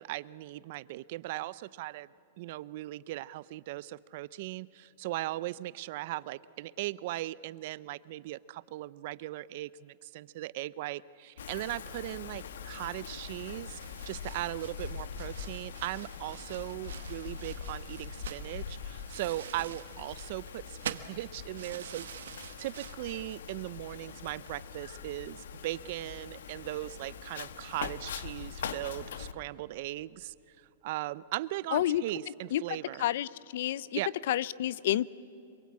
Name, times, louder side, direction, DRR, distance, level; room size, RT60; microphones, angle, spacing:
voice 1, 0.0-2.1 2.4-13.8 14.1-22.1 22.6-30.3 30.8-33.1 33.9-34.1, right 16 dB, 50° right, 19 dB, 0.5 m, -38 dB
Wind, 11.4-29.3, left 7 dB, 85° left, 1.1 m, -43 dB
sound 1, 13.8-23.0, right 9 dB, 85° right, 1.1 m, -46 dB
voice 2, 31.7-32.0 32.5-32.6 33.0-33.9 34.3-35.1, left 13 dB, 60° left, 21 dB, 0.5 m, -29 dB
26.5 x 23.0 x 8.6 m, 2.8 s
supercardioid pair, 155°, 0 cm